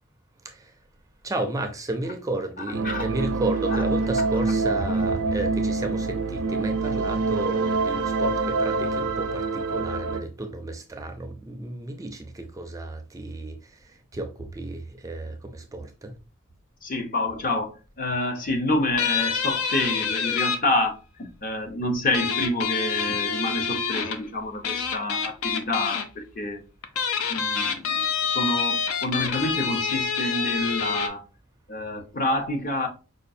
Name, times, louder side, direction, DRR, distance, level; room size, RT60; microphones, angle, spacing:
voice 1, 0.4-0.8 1.2-16.2, right 2 dB, 15° right, 0.4 m, -33 dB
sound 1, 2.7-10.2, right 3 dB, 75° right, 0.4 m, -25 dB
voice 2, 16.8-26.6 27.3-31.3 31.7-32.9, left 2 dB, 40° left, 0.7 m, -28 dB
sound 2, 19.0-20.6 22.1-24.2 24.6-26.0 26.8-31.1, left 6 dB, 80° left, 0.5 m, -27 dB
5.0 x 2.3 x 2.6 m
head